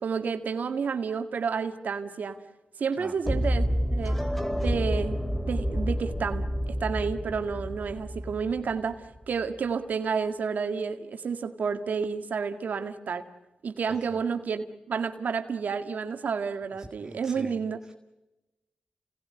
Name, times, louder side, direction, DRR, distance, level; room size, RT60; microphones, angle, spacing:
voice 1, 0.0-2.4 2.8-4.3 4.6-5.2 5.5-13.2 13.6-17.8, right 5 dB, 75° right, 7 dB, 1.9 m, -30 dB
sound 1, 3.2-9.2, equal, 5° left, 3.1 m, -29 dB
voice 2, 16.8-17.5, right 1 dB, 20° right, 6 dB, 1.6 m, -44 dB
29.0 x 19.0 x 9.6 m, 1.0 s
cardioid pair, 65°, 3 cm